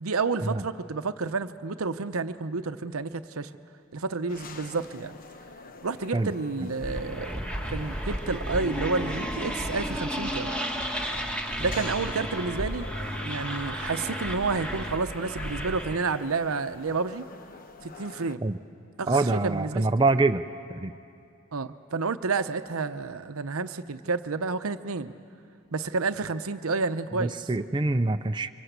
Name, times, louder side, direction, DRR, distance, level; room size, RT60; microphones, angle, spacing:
voice 1, 0.0-3.5 3.9-5.1 5.8-7.3 7.7-10.6 11.6-12.9 13.2-17.3 17.8-18.4 19.0-19.9 21.5-25.1 25.7-27.4, right 4 dB, 80° right, 11 dB, 0.8 m, -30 dB
sound 1, 4.3-18.4, left 3 dB, 40° left, 1.1 m, -46 dB
sound 2, 6.8-16.2, equal, 5° left, 1.8 m, -33 dB
voice 2, 19.1-20.4 20.7-20.9 27.2-28.5, right 3 dB, 20° right, 8 dB, 0.5 m, -25 dB
27.0 x 24.5 x 8.2 m, 2.6 s
head